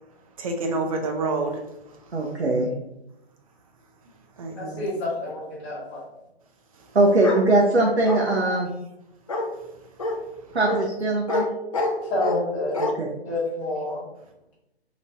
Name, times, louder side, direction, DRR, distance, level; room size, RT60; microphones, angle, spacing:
voice 1, 0.4-1.6 1.9-2.4 4.4-4.9 6.8-6.9 10.4-10.6, right 3 dB, 35° right, 2 dB, 0.5 m, -29 dB
voice 2, 2.1-2.7 6.9-8.7 10.5-11.5 12.8-13.1, right 2 dB, 85° right, -1 dB, 0.7 m, -21 dB
voice 3, 4.6-6.0 12.1-12.8 13.2-14.0, left 2 dB, 15° left, -7 dB, 0.9 m, -28 dB
Bark, 7.2-7.5 8.1-8.6 9.3-9.5 10.0-10.2 10.6-10.8 11.3-11.5 11.7-12.4 12.7-12.9, left 2 dB, 35° left, 0.4 m, -26 dB
3.0 x 2.7 x 3.3 m, 0.88 s
figure-of-eight pair, 140°, 32 cm